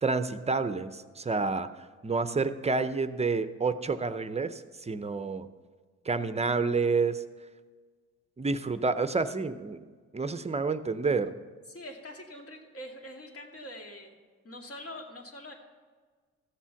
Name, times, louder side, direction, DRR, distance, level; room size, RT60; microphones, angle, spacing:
voice 1, 0.0-1.7 2.0-5.5 6.1-7.2 8.4-9.9 10.1-11.4, right 4 dB, 20° right, 11 dB, 0.6 m, -29 dB
voice 2, 11.7-14.1 14.4-15.5, left 1 dB, 50° left, 1 dB, 2.3 m, -44 dB
14.5 x 7.3 x 5.8 m, 1.5 s
cardioid pair, 90°, 30 cm